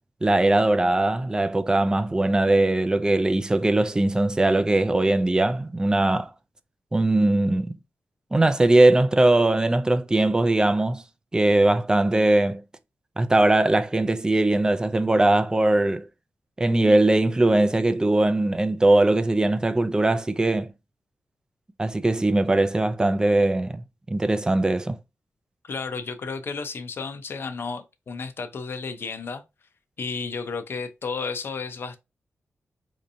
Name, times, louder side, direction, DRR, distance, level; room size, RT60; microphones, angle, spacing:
voice 1, 0.2-6.3 6.9-7.7 8.3-11.0 11.3-12.6 13.2-16.1 16.6-20.7 21.8-23.8 24.1-25.0, right 2 dB, 15° right, 0.4 m, -20 dB
voice 2, 25.6-29.4 30.0-32.0, left 4 dB, 55° left, 0.5 m, -32 dB
4.3 x 2.7 x 2.6 m
wide cardioid pair, 105°, 5 cm